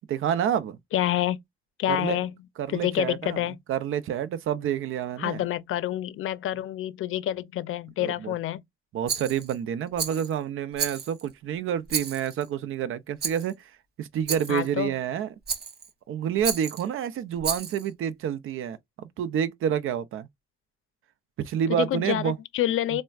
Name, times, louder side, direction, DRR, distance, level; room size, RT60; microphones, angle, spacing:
voice 1, 0.1-0.8 1.9-2.2 2.6-5.4 8.0-8.3 8.9-13.7 14.0-15.3 16.1-20.3 21.4-22.4 22.9-23.0, right 9 dB, 80° right, 0.5 m, -28 dB
voice 2, 0.9-1.4 1.8-2.3 2.7-3.6 5.2-8.6 14.5-14.9 21.7-23.0, left 13 dB, 85° left, 0.5 m, -27 dB
Rattle, 9.1-9.6 10.0-10.3 10.8-11.3 11.9-12.5 13.2-13.5 14.3-14.7 15.5-15.9 16.4-16.9 17.4-17.9, right 6 dB, 50° right, 0.8 m, -32 dB
4.2 x 2.1 x 2.3 m
cardioid pair, 125°, 21 cm